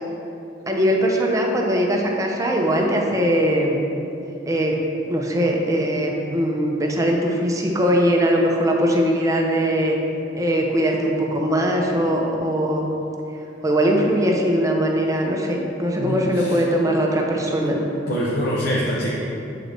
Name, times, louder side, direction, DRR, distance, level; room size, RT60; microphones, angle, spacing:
voice 1, 0.7-3.8 4.5-4.8 5.1-10.0 10.3-12.9 13.6-17.8, equal, 20° right, 0 dB, 0.6 m, -21 dB
voice 2, 15.9-16.6 17.7-19.1, equal, 55° left, -6 dB, 0.7 m, -25 dB
7.6 x 3.8 x 3.4 m, 2.8 s
head